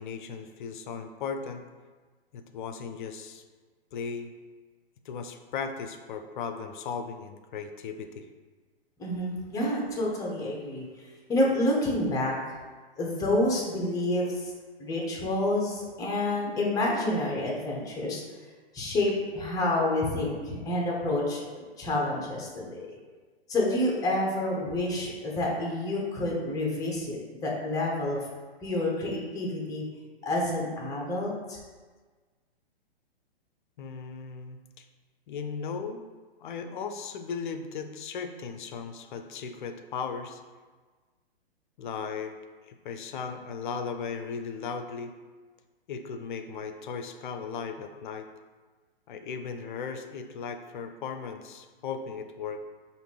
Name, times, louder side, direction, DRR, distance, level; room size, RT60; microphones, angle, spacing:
voice 1, 0.0-1.6 2.3-3.4 3.9-4.3 5.1-8.3 33.8-34.9 35.3-36.0 36.4-40.4 41.8-42.3 42.6-45.1 45.9-48.3 49.1-52.6, left 5 dB, 55° left, 7 dB, 0.5 m, -37 dB
voice 2, 9.0-10.9 11.3-12.6 13.0-14.5 14.8-18.2 18.7-22.8 23.5-28.3 28.6-29.8 30.2-31.6, left 1 dB, 10° left, -2 dB, 0.7 m, -28 dB
5.0 x 2.5 x 3.2 m, 1.4 s
hypercardioid pair, 130°, 30 cm